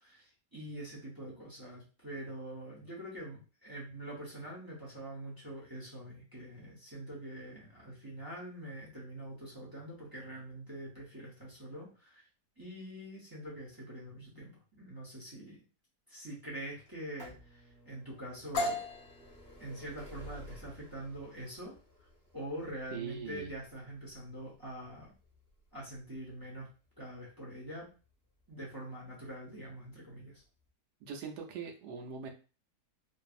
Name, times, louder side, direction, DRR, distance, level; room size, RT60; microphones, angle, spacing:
voice 1, 0.0-12.2 12.6-15.6 16.1-18.8 19.6-21.7 22.3-25.1 25.7-26.7 27.0-27.9 28.5-30.4, right 1 dB, 30° right, -5 dB, 0.3 m, -44 dB
sound 1, 16.9-28.5 29.3-29.4 30.4-30.5 30.7-30.8, left 1 dB, 5° left, 0.7 m, -55 dB
sound 2, 18.5-26.2, left 2 dB, 65° left, 0.9 m, -41 dB
voice 2, 22.9-23.5 31.0-32.3, right 6 dB, 80° right, 4 dB, 1.1 m, -41 dB
2.6 x 2.6 x 2.4 m, 0.35 s
omnidirectional pair, 1.8 m